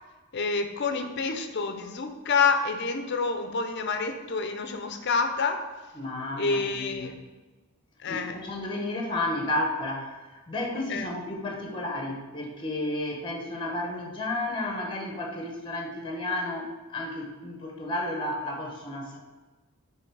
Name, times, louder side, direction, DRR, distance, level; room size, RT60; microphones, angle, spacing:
voice 1, 0.3-5.7 6.4-7.2 8.0-8.4 10.9-11.1, left 4 dB, 50° left, 7 dB, 0.5 m, -28 dB
voice 2, 6.0-7.1 8.1-19.2, left 1 dB, 20° left, 0 dB, 0.9 m, -32 dB
6.8 x 3.2 x 4.7 m, 1.2 s
head